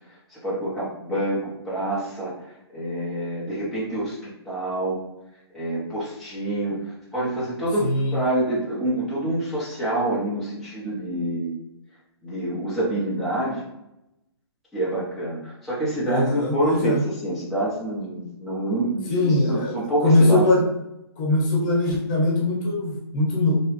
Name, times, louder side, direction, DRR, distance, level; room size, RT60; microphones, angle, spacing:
voice 1, 0.1-5.0 5.5-11.5 12.2-13.6 14.7-20.5, right 1 dB, ahead, -11 dB, 0.8 m, -27 dB
voice 2, 7.8-8.2 16.0-17.0 19.1-19.7 20.0-20.6 21.2-23.6, left 2 dB, 45° left, -3 dB, 1.2 m, -21 dB
3.1 x 2.2 x 3.2 m, 0.87 s
hypercardioid pair, 140°, 14 cm